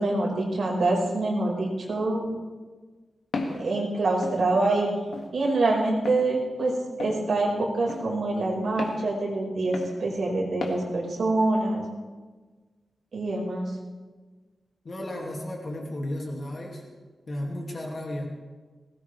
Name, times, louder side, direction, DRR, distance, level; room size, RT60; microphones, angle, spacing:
voice 1, 0.0-2.3 3.5-4.9 5.3-11.8 13.1-13.8, right 2 dB, 60° right, -3 dB, 4.9 m, -25 dB
Walk footsteps, 3.3-3.6 4.2-4.4 5.1-5.3 6.0-6.2 7.0-7.2 7.9-8.0 8.8-9.0 9.7-9.9 10.6-10.8, left 3 dB, 80° left, 2.0 m, -33 dB
voice 2, 14.8-16.8 17.3-18.3, left 1 dB, 40° left, -1 dB, 2.2 m, -33 dB
20.5 x 18.0 x 3.3 m, 1.4 s
wide cardioid pair, 170°, 0 cm